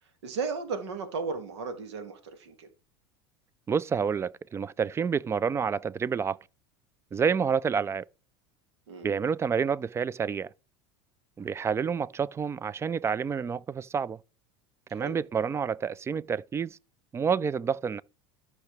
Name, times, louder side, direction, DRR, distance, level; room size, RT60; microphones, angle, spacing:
voice 1, 0.2-2.7 8.9-9.1 14.9-15.2, right 4 dB, 90° right, 2.0 m, -35 dB
voice 2, 3.7-6.4 7.1-8.1 9.0-10.5 11.4-14.2 14.9-16.8 17.1-18.0, right 6 dB, 20° right, 0.4 m, -28 dB
13.0 x 6.0 x 3.3 m
supercardioid pair, 100°, 14 cm